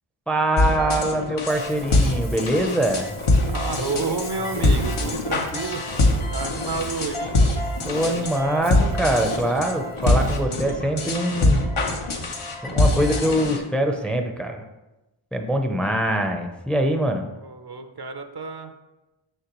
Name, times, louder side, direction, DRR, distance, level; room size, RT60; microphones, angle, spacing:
voice 1, 0.3-3.1 7.8-11.6 12.6-14.6 15.3-17.3, right 1 dB, ahead, 4 dB, 0.5 m, -23 dB
sound 1, 0.6-13.6, left 2 dB, 85° left, 0.9 m, -23 dB
Ocean, 1.5-10.4, left 2 dB, 70° left, 1.7 m, -43 dB
voice 2, 3.5-5.8 6.3-7.3 17.3-18.8, right 4 dB, 50° right, 6 dB, 0.6 m, -30 dB
6.7 x 5.6 x 3.0 m, 1.0 s
wide cardioid pair, 50°, 49 cm